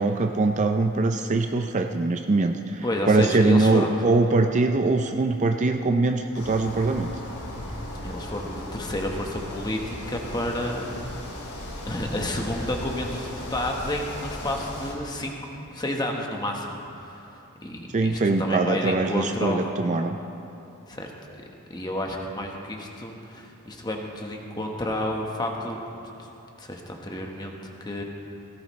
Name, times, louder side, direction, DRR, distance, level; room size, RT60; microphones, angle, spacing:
voice 1, 0.0-7.1 17.9-20.2, right 3 dB, 35° right, 5 dB, 0.5 m, -22 dB
voice 2, 2.8-3.9 8.0-11.1 11.8-17.3 17.6-19.6 20.9-21.1 21.7-25.8 26.6-28.0, left 1 dB, 20° left, 1 dB, 1.2 m, -30 dB
sound 1, 6.3-14.9, left 1 dB, 75° left, 2.9 m, -37 dB
17.5 x 16.0 x 3.2 m, 2.9 s
head